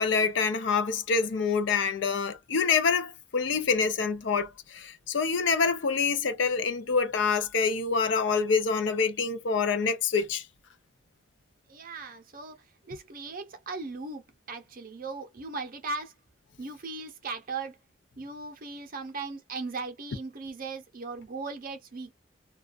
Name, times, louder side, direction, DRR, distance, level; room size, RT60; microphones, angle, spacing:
voice 1, 0.0-10.4, left 5 dB, 70° left, 0.5 m, -26 dB
voice 2, 11.7-16.1 16.6-17.8 18.2-22.1, right 3 dB, 50° right, 0.6 m, -38 dB
2.3 x 2.3 x 2.4 m
head